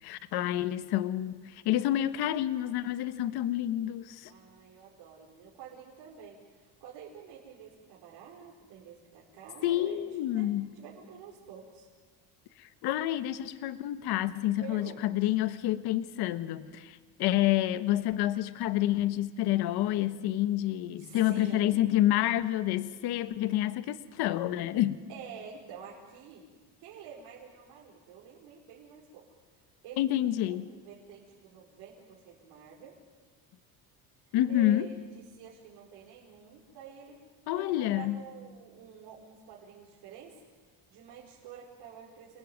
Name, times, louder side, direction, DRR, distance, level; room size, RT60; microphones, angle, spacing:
voice 1, 0.0-4.3 9.6-10.7 12.6-25.0 30.0-30.7 34.3-34.9 37.5-38.2, left 13 dB, 70° left, 12 dB, 1.3 m, -28 dB
voice 2, 4.3-10.0 10.3-11.9 14.6-15.1 21.0-21.8 25.1-26.5 26.8-29.3 29.8-33.0 34.5-35.0 35.3-37.2 37.5-40.4 40.9-42.4, right 7 dB, 75° right, -4 dB, 5.1 m, -48 dB
29.5 x 20.5 x 9.4 m, 1.4 s
cardioid pair, 145°, 40 cm